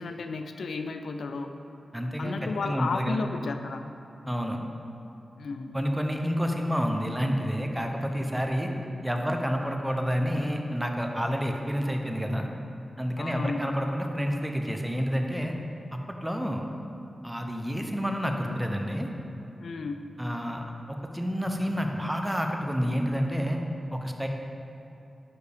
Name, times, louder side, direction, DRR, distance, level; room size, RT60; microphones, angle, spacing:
voice 1, 0.0-1.5 2.2-3.9 5.4-6.0 13.2-13.7 19.6-20.2, left 4 dB, 85° left, 7 dB, 0.3 m, -33 dB
voice 2, 1.9-3.2 4.3-4.6 5.7-8.7 9.0-12.5 13.0-15.5 15.9-16.7 17.2-19.1 20.2-23.6 23.9-24.3, equal, 5° right, 3 dB, 0.6 m, -29 dB
9.4 x 4.6 x 3.4 m, 2.8 s
wide cardioid pair, 95°, 0 cm